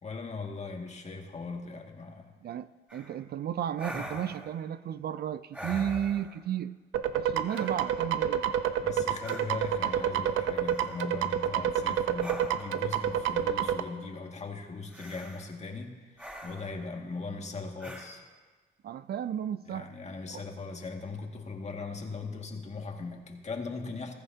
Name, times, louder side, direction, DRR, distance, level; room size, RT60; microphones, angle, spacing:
voice 1, 0.0-2.3 7.2-7.3 8.8-18.2 19.7-24.1, left 3 dB, 35° left, 2.0 m, -39 dB
voice 2, 2.4-6.7 7.1-8.4 18.8-19.9 20.3-20.4, right 9 dB, 55° right, 0.4 m, -34 dB
sound 1, 2.9-3.1 3.8-4.6 5.5-6.4 7.4-8.0 9.2-9.4 10.6-11.2 12.2-12.8 14.9-15.5 16.2-16.8 17.8-18.1, equal, 5° right, 3.6 m, -43 dB
sound 2, 6.9-13.8, right 9 dB, 85° right, 0.8 m, -28 dB
20.5 x 14.5 x 2.8 m
cardioid pair, 90°, 20 cm